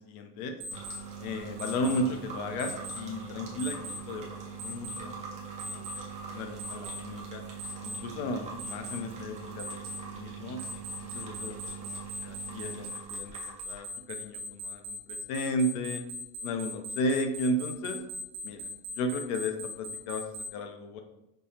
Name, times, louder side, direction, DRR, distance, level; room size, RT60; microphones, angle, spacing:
voice 1, 0.1-0.6 1.2-5.1 5.5-5.8 6.3-7.4 7.8-10.6 11.1-12.0 12.2-16.0 16.4-18.0 18.4-18.6 18.9-20.2 20.5-21.0, left 1 dB, 65° left, 6 dB, 0.7 m, -34 dB
Alarm, 0.6-1.0 1.6-2.0 2.6-3.0 3.6-4.0 4.6-5.0 5.6-6.0 6.6-7.0 7.6-8.0 8.6-9.0 9.6-10.0 10.6-20.5, equal, 60° right, 0.8 m, -39 dB
sound 1, 0.7-13.8, right 6 dB, 15° right, 0.4 m, -42 dB
5.4 x 2.0 x 2.7 m, 0.90 s
supercardioid pair, 150°, 47 cm